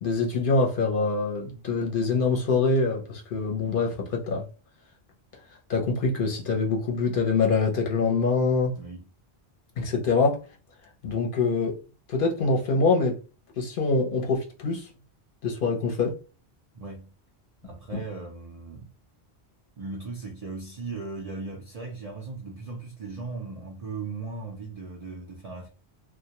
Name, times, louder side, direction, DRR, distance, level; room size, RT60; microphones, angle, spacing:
voice 1, 0.0-4.5 5.7-8.8 9.8-10.4 11.0-11.8 12.1-13.2 13.6-14.9 15.4-16.1, left 4 dB, 60° left, 0.7 m, -24 dB
voice 2, 8.7-9.0 16.7-17.1 17.6-18.9 19.8-25.7, right 3 dB, 55° right, 0.4 m, -37 dB
2.1 x 2.1 x 2.8 m
omnidirectional pair, 1.1 m